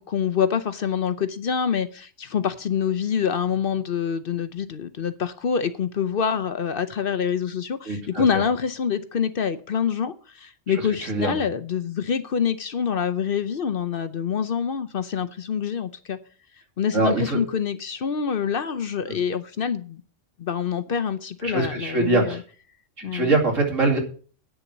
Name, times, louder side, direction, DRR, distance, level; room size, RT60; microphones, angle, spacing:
voice 1, 0.0-16.2 16.8-20.0 20.4-22.4 23.0-23.3, left 7 dB, 55° left, 12 dB, 0.8 m, -26 dB
voice 2, 7.8-8.4 10.7-10.8 11.0-11.4 16.9-17.4 19.1-19.2 21.4-22.4 23.0-24.0, right 2 dB, 85° right, 1 dB, 3.0 m, -23 dB
9.2 x 6.8 x 7.3 m, 0.42 s
omnidirectional pair, 1.3 m